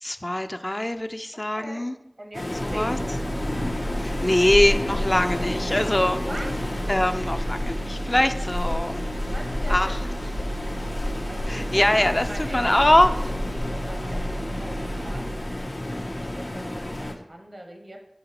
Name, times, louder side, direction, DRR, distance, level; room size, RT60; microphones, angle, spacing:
voice 1, 0.0-1.9 2.6-3.0 3.5-3.6 4.0-6.2 6.9-9.1 9.7-10.0 11.5-13.1, left 1 dB, 40° left, 8 dB, 0.4 m, -23 dB
voice 2, 2.2-3.0 6.2-6.5 9.1-9.9 10.2-10.7 11.3-12.8 13.1-15.2 15.9-18.0, right 1 dB, 75° right, 2 dB, 0.9 m, -41 dB
Waves surf, 2.3-17.1, left 1 dB, 80° left, 0.7 m, -30 dB
sound 1, 2.7-15.8 16.1-16.3, right 1 dB, 40° right, 0.4 m, -34 dB
6.5 x 5.4 x 2.9 m, 0.82 s
wide cardioid pair, 40°, 0 cm